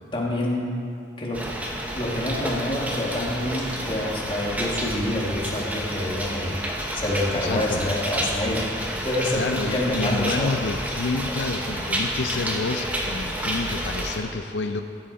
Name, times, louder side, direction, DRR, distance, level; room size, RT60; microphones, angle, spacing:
voice 1, 0.1-0.7 1.2-1.4 1.9-6.7 6.9-8.7 9.0-10.5, left 1 dB, 30° left, -3 dB, 1.8 m, -27 dB
sound 1, 1.3-14.2, equal, 10° right, 1.0 m, -30 dB
voice 2, 7.4-7.8 9.3-14.8, left 3 dB, 85° left, 6 dB, 0.5 m, -29 dB
15.5 x 7.6 x 4.2 m, 2.6 s
head